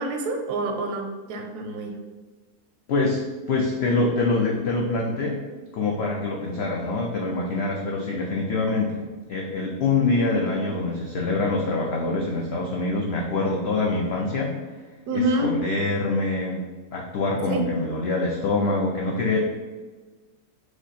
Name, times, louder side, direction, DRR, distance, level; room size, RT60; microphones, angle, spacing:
voice 1, 0.0-1.9 15.1-15.6 17.5-17.7, right 1 dB, 80° right, 3 dB, 1.2 m, -27 dB
voice 2, 2.9-3.2 3.5-5.4 5.7-9.0 9.3-14.5 15.1-16.6 16.9-19.4, left 3 dB, 80° left, -1 dB, 0.5 m, -25 dB
4.9 x 2.0 x 4.0 m, 1.3 s
omnidirectional pair, 1.7 m